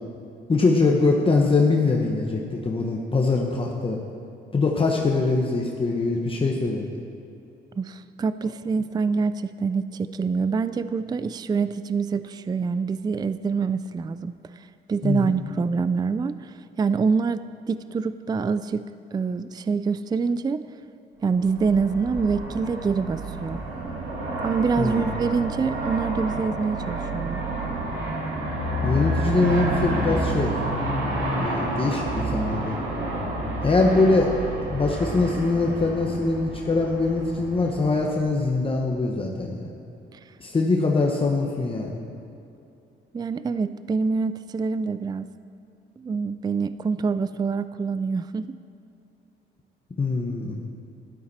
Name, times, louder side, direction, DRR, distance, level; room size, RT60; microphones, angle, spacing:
voice 1, 0.5-4.0 4.5-6.9 15.0-15.3 24.8-25.1 28.8-30.6 31.4-32.8 33.6-34.3 34.7-39.7 40.4-42.0 50.0-50.6, left 3 dB, 25° left, -1 dB, 1.2 m, -23 dB
voice 2, 7.8-18.8 19.1-20.6 21.2-23.6 24.4-27.4 40.1-40.2 43.1-45.3 46.0-48.6, right 5 dB, 20° right, 13 dB, 0.4 m, -26 dB
Aircraft, 21.4-38.6, right 1 dB, 85° right, 2.5 m, -29 dB
13.0 x 12.0 x 4.3 m, 2.7 s
cardioid pair, 90°, 20 cm